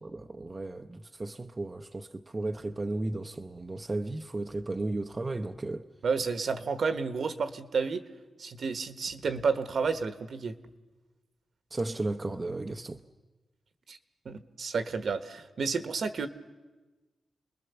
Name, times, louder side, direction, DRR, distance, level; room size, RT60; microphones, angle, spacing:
voice 1, 0.0-5.9 11.7-13.0, right 2 dB, 25° right, 0.7 m, -34 dB
voice 2, 6.0-8.0 8.4-10.5 13.9-14.0 14.2-16.3, right 5 dB, 60° right, 1.3 m, -31 dB
29.5 x 21.5 x 7.0 m
wide cardioid pair, 145°, 0 cm